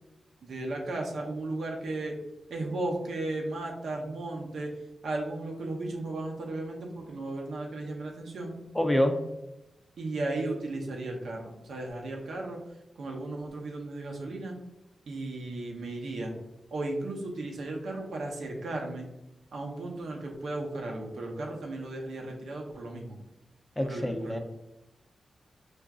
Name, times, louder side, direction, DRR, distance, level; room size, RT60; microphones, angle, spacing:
voice 1, 0.4-2.1 2.5-4.7 5.0-8.6 10.0-12.6 12.9-14.6 15.1-16.3 16.7-19.1 19.5-23.2 23.8-24.4, right 2 dB, 80° right, 1 dB, 0.6 m, -35 dB
voice 2, 8.7-9.2 23.8-24.4, left 1 dB, 10° left, 5 dB, 0.4 m, -26 dB
4.6 x 2.5 x 2.3 m, 0.92 s
cardioid pair, 90°, 0 cm